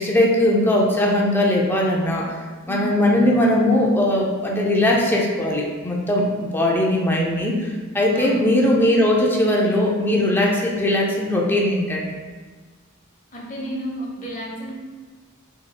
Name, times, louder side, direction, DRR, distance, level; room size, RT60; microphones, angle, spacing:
voice 1, 0.0-2.3 2.7-7.7 7.9-12.1, left 1 dB, 10° left, -2 dB, 0.5 m, -19 dB
voice 2, 13.3-14.7, equal, 40° left, -3 dB, 1.0 m, -31 dB
6.0 x 3.1 x 2.2 m, 1.4 s
head